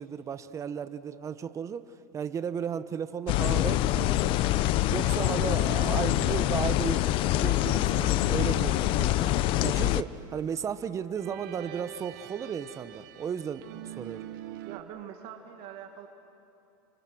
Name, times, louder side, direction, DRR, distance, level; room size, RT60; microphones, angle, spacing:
voice 1, 0.0-1.9 2.1-4.4 4.9-7.1 7.3-14.3, right 7 dB, 25° right, 13 dB, 1.0 m, -35 dB
sound 1, 3.3-10.0, left 15 dB, 50° left, 0.6 m, -25 dB
sound 2, 4.8-14.8, right 12 dB, 75° right, 1.3 m, -45 dB
voice 2, 14.6-16.1, right 9 dB, 55° right, 4 dB, 1.9 m, -43 dB
29.5 x 25.5 x 6.2 m, 2.7 s
supercardioid pair, 115°, 11 cm